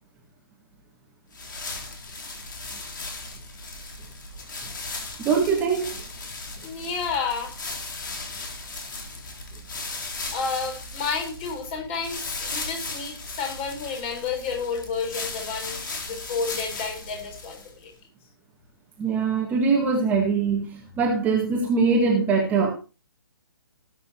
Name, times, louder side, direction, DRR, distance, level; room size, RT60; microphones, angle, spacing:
sound 1, 1.3-17.8, left 3 dB, 55° left, 3.9 m, -37 dB
voice 1, 5.2-5.9 19.0-22.7, right 5 dB, 15° right, -1 dB, 2.0 m, -22 dB
voice 2, 6.6-7.5 10.3-17.9, left 5 dB, 30° left, 3 dB, 4.7 m, -31 dB
19.0 x 8.8 x 3.0 m, 0.32 s
figure-of-eight pair, 135°, 13 cm